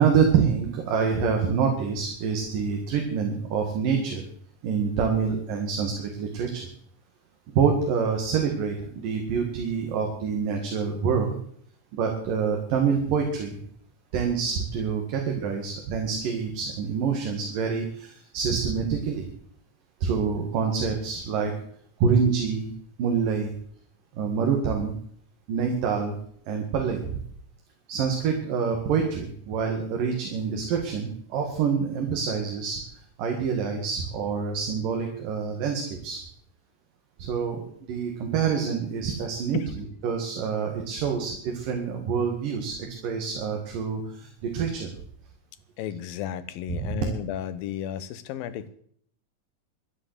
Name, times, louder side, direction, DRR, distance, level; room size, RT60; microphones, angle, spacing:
voice 1, 0.0-4.2 4.6-6.7 7.6-11.4 11.9-13.6 14.1-19.3 20.0-21.5 22.0-22.7 23.0-23.5 24.1-25.0 25.5-26.2 26.5-27.2 27.9-32.8 33.2-36.2 37.2-37.6 37.9-44.9 46.7-47.0, right 6 dB, 70° right, 3 dB, 3.5 m, -26 dB
voice 2, 45.8-48.7, left 10 dB, 85° left, 13 dB, 2.8 m, -33 dB
12.5 x 11.0 x 8.0 m, 0.62 s
omnidirectional pair, 4.1 m